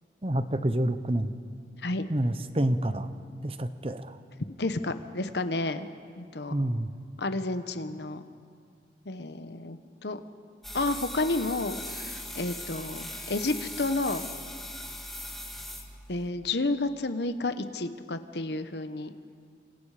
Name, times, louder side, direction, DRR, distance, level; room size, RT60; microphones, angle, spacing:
voice 1, 0.2-1.3 2.1-3.1 3.4-4.2 6.5-6.9, right 1 dB, 30° right, 11 dB, 0.9 m, -28 dB
voice 2, 4.6-5.9 6.2-6.5 7.2-8.2 9.1-10.2 10.7-14.3 16.1-19.1, left 2 dB, 75° left, 10 dB, 1.1 m, -31 dB
sound 1, 10.6-16.3, left 1 dB, ahead, 1.9 m, -39 dB
28.0 x 27.5 x 5.0 m, 2.2 s
head